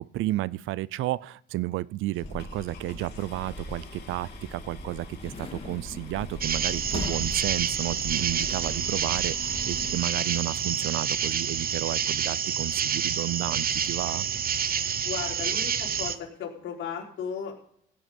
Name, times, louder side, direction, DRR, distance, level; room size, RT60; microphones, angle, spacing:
voice 1, 0.0-14.3, right 16 dB, 85° right, 0.5 m, -32 dB
sound 1, 2.1-12.1 12.9-13.0 13.5-13.6 13.8-14.1, left 6 dB, 55° left, 3.9 m, -53 dB
sound 2, 2.2-10.0, left 1 dB, 30° left, 2.5 m, -39 dB
sound 3, 6.4-16.2, right 8 dB, 50° right, 0.8 m, -28 dB
voice 2, 15.0-16.1 16.4-17.6, left 7 dB, 80° left, 3.7 m, -35 dB
16.5 x 9.1 x 5.3 m
cardioid pair, 90°, 20 cm